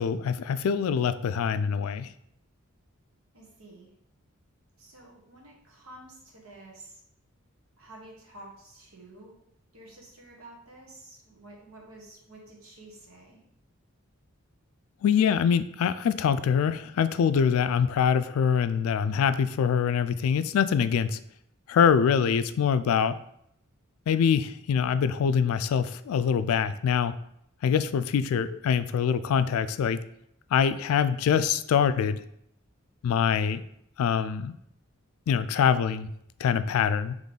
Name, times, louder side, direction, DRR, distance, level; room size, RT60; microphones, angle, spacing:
voice 1, 0.0-2.1 15.0-21.2 21.7-23.2 24.1-27.2 27.6-30.0 30.5-32.2 33.0-33.6 34.0-34.5 35.3-36.1 36.4-37.1, left 7 dB, 80° left, 13 dB, 0.3 m, -24 dB
voice 2, 3.3-3.9 4.8-7.0 7.8-9.4 9.7-13.4 35.6-35.8, right 1 dB, 80° right, -1 dB, 1.2 m, -50 dB
4.0 x 3.1 x 3.7 m, 0.74 s
head